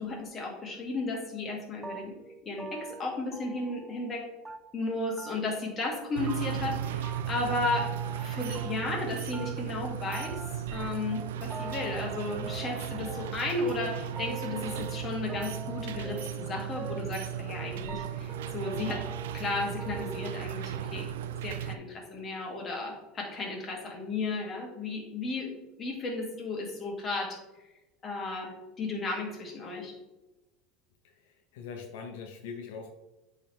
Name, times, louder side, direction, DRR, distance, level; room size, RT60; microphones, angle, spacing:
voice 1, 0.0-2.1 2.4-4.2 4.7-7.9 8.2-10.4 10.7-19.0 19.3-21.1 21.4-25.5 25.8-27.4 28.0-29.9, left 3 dB, 30° left, 0 dB, 2.0 m, -34 dB
sound 1, 1.8-4.2 4.4-4.9 5.2-5.6 5.9-6.7 7.0-9.1 9.3-20.4, right 2 dB, 10° right, 0.7 m, -44 dB
sound 2, 6.2-21.8, right 10 dB, 85° right, 0.4 m, -36 dB
voice 2, 31.0-32.9, left 5 dB, 80° left, 4 dB, 0.7 m, -42 dB
8.6 x 3.9 x 3.1 m, 1.0 s
supercardioid pair, 115°, 0 cm